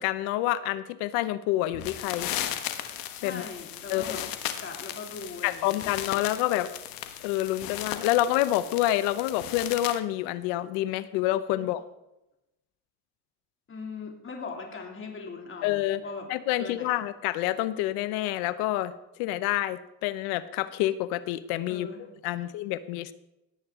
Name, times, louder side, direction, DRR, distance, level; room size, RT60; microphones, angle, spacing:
voice 1, 0.0-2.3 3.2-3.4 3.9-4.2 5.4-6.7 7.2-11.8 15.6-16.0 16.3-18.9 19.2-21.9 22.2-23.1, left 14 dB, 85° left, 15 dB, 0.8 m, -28 dB
sound 1, 1.7-10.0, left 11 dB, 65° left, 1.3 m, -36 dB
voice 2, 3.1-4.3 4.6-5.8 11.6-11.7 13.7-16.3 16.6-16.9 21.7-22.1 22.3-22.4, left 4 dB, 35° left, 1 dB, 2.7 m, -40 dB
17.5 x 8.6 x 3.6 m, 0.91 s
cardioid pair, 105°, 37 cm